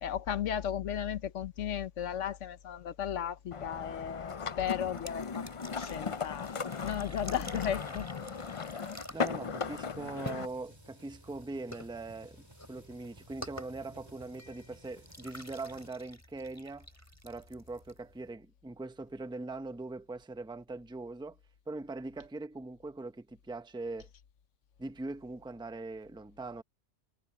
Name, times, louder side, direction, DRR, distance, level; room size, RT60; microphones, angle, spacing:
voice 1, 0.0-6.5 6.8-8.1, left 9 dB, 75° left, 1.2 m, -35 dB
sound 1, 3.5-10.5, left 5 dB, 40° left, 0.5 m, -37 dB
sound 2, 4.6-18.3, equal, 10° left, 5.3 m, -50 dB
sound 3, 6.8-15.9, right 1 dB, 20° right, 4.5 m, -57 dB
voice 2, 9.1-12.4 12.7-16.9 17.2-21.4 21.7-24.1 24.8-26.6, right 3 dB, 5° right, 0.6 m, -41 dB
omnidirectional pair, 1.3 m